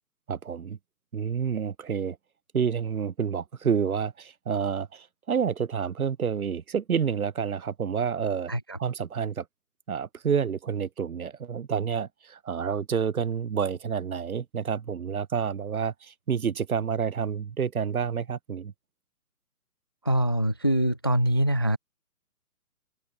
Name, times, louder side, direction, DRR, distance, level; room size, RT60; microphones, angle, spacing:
voice 1, 0.3-0.8 1.1-2.2 2.5-8.5 8.8-9.4 9.9-18.7, right 7 dB, 70° right, 1.3 m, -29 dB
voice 2, 20.1-21.8, equal, 15° left, 0.4 m, -24 dB
figure-of-eight pair, 140°, 45 cm